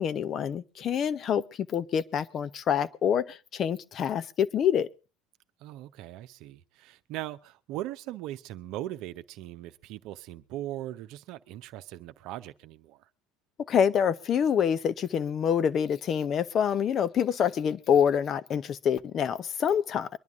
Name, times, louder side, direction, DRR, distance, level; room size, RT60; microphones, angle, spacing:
voice 1, 0.0-1.4 1.7-4.9 13.7-20.1, left 8 dB, 45° left, 0.7 m, -26 dB
voice 2, 5.6-13.1, right 14 dB, 65° right, 0.8 m, -39 dB
23.5 x 10.5 x 3.6 m
hypercardioid pair, 75°, 0 cm